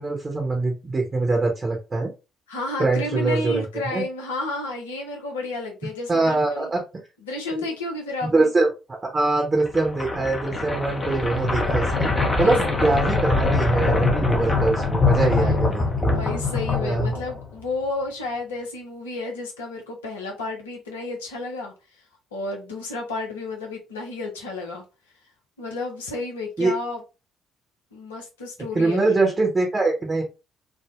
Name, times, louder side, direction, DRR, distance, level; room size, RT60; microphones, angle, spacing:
voice 1, 0.0-2.1 2.8-3.6 3.9-4.0 6.1-6.8 8.3-16.1 16.8-17.1 26.6-26.7 28.7-30.2, right 3 dB, 25° right, 0.8 m, -23 dB
voice 2, 2.5-6.7 7.2-8.5 12.4-12.6 15.1-15.6 16.1-21.7 22.3-24.8 25.6-27.0 27.9-29.3, left 2 dB, 75° left, 0.6 m, -32 dB
sound 1, 9.6-17.6, left 3 dB, 30° left, 0.7 m, -23 dB
3.6 x 2.0 x 2.4 m
figure-of-eight pair, 45°, 0 cm